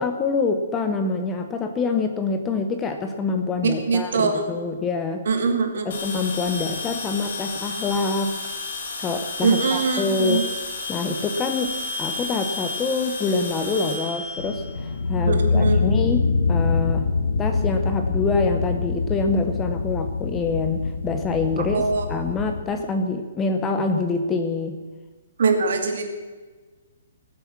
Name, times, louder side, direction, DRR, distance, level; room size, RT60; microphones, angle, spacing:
voice 1, 0.0-5.3 5.9-8.4 9.0-10.5 10.9-17.1 17.4-21.8 22.1-24.8, left 4 dB, 10° left, 6 dB, 0.7 m, -26 dB
voice 2, 3.9-4.5 5.3-6.0 9.4-10.4 15.2-15.9 21.6-22.1 25.4-26.0, right 4 dB, 60° right, 4 dB, 2.5 m, -22 dB
sound 1, 5.9-15.2, left 3 dB, 50° left, 3.0 m, -32 dB
sound 2, 14.4-22.6, left 4 dB, 75° left, 1.5 m, -24 dB
19.0 x 8.1 x 7.3 m, 1.3 s
hypercardioid pair, 175°, 0 cm